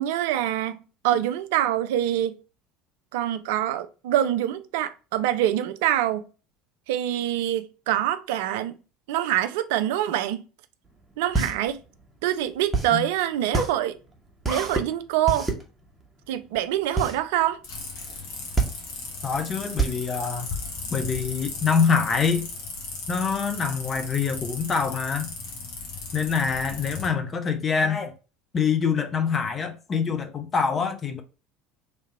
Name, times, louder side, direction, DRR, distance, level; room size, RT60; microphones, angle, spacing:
voice 1, 0.0-2.4 3.1-6.2 6.9-8.8 9.1-10.4 11.2-11.8 12.2-14.0 14.5-15.5 16.3-17.6, right 12 dB, 60° right, 0.4 m, -25 dB
sound 1, 10.9-21.2, right 3 dB, 15° right, 1.1 m, -28 dB
sound 2, 17.6-27.1, left 4 dB, 55° left, 1.2 m, -36 dB
voice 2, 19.2-20.5 20.9-22.5 23.1-25.3 26.1-28.1 28.5-31.2, left 6 dB, 30° left, 0.6 m, -25 dB
3.4 x 2.9 x 4.1 m
figure-of-eight pair, 70°, 0 cm